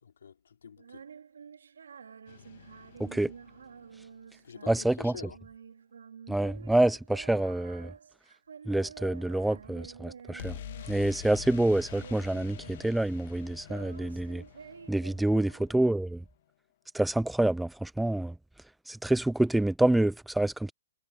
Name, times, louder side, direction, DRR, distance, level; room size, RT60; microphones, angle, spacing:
voice 1, 0.0-1.1 4.4-5.4 15.1-15.6, left 7 dB, 80° left, 4.0 m, -48 dB
Female singing, 0.8-11.1 11.4-13.1 13.3-16.0, right 6 dB, 85° right, 3.7 m, -50 dB
sound 1, 2.3-4.3 10.4-16.2, left 12 dB, 45° left, 1.6 m, -47 dB
voice 2, 3.0-3.3 4.7-5.1 6.3-7.9 8.7-10.6 10.9-14.4 14.9-16.2 16.9-18.3 18.9-20.7, right 1 dB, ahead, 0.3 m, -27 dB
hypercardioid pair, 165°, 0 cm